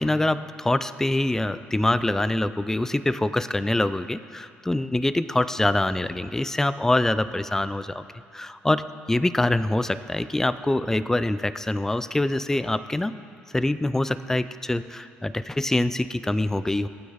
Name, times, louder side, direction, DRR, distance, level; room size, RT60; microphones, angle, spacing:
voice 1, 0.0-8.0 8.3-13.1 13.5-16.9, left 1 dB, 10° left, 13 dB, 0.5 m, -25 dB
23.0 x 9.2 x 4.1 m, 2.5 s
cardioid pair, 85°, 4 cm